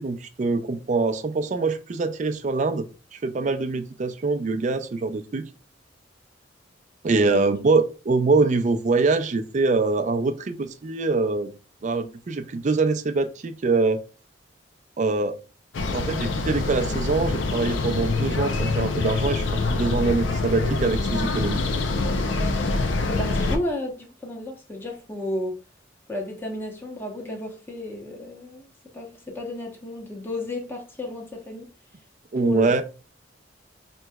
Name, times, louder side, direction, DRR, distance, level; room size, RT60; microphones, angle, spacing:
voice 1, 0.0-5.4 7.0-11.5 11.8-14.0 15.0-15.4 15.9-19.4 19.7-21.6 32.3-32.8, right 3 dB, 40° right, 0.4 m, -24 dB
sound 1, 15.7-23.6, left 3 dB, 80° left, 0.5 m, -25 dB
voice 2, 23.1-25.6 26.1-28.7 28.9-31.7 32.4-32.8, left 1 dB, 10° left, 0.8 m, -32 dB
4.5 x 3.0 x 2.2 m
head